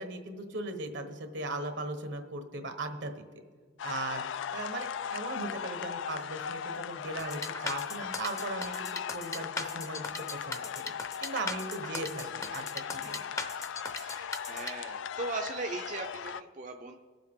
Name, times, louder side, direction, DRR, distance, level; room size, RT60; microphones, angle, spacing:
voice 1, 0.0-3.4 3.8-4.2 4.5-8.9 9.1-10.1 10.4-10.9 11.2-13.2, right 2 dB, 75° right, 7 dB, 1.2 m, -38 dB
sound 1, 3.8-16.4, left 8 dB, 85° left, 0.3 m, -38 dB
sound 2, 7.2-14.7, left 3 dB, 15° left, 0.6 m, -38 dB
voice 2, 13.9-16.9, right 3 dB, 45° right, 2 dB, 0.6 m, -39 dB
21.5 x 7.5 x 3.7 m, 1.5 s
head